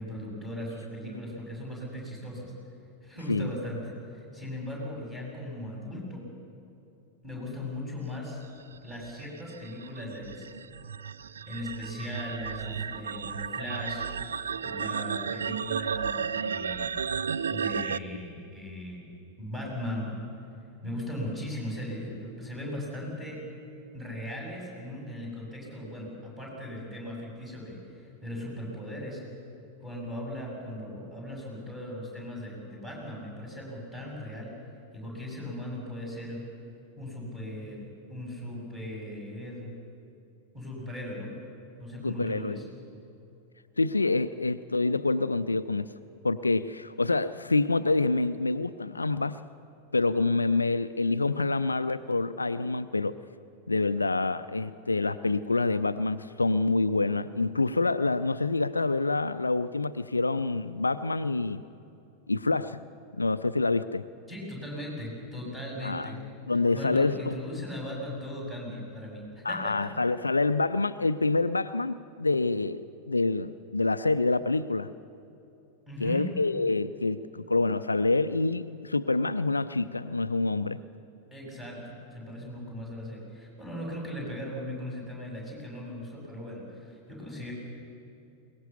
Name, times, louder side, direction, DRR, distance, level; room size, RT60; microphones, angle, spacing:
voice 1, 0.0-2.5 3.0-3.8 4.1-6.3 7.2-8.4 8.8-10.5 11.5-14.1 14.6-17.1 17.5-19.0 19.4-20.2 20.8-23.5 23.9-29.2 29.8-34.6 34.9-36.5 37.0-39.7 40.5-41.3 41.8-42.6 64.3-66.2 66.7-69.9 75.9-76.3 81.3-87.5, left 1 dB, 10° right, -2 dB, 7.4 m, -38 dB
sound 1, 8.7-18.0, right 6 dB, 70° right, 0.4 m, -33 dB
voice 2, 42.0-42.6 43.8-45.9 46.2-49.4 49.9-53.2 53.7-61.6 62.3-62.8 63.2-64.0 65.8-66.1 66.5-67.3 69.4-74.9 76.0-80.8, left 3 dB, 80° left, 13 dB, 0.5 m, -27 dB
22.0 x 19.5 x 7.0 m, 2.8 s
figure-of-eight pair, 90°, 0 cm